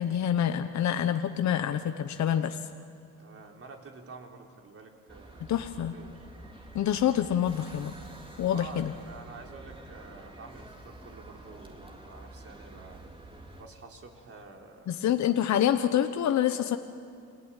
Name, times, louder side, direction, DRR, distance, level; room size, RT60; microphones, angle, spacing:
voice 1, 0.0-2.6 5.5-5.9 6.7-8.0 8.4-8.9 14.9-16.8, left 10 dB, 65° left, 8 dB, 1.1 m, -26 dB
voice 2, 3.2-5.4 5.9-6.6 8.5-13.0 13.6-15.0, right 4 dB, 50° right, 1 dB, 4.1 m, -48 dB
sound 1, 5.1-13.6, right 2 dB, 15° right, 3.0 m, -48 dB
29.5 x 21.0 x 9.2 m, 2.3 s
cardioid pair, 90°, 30 cm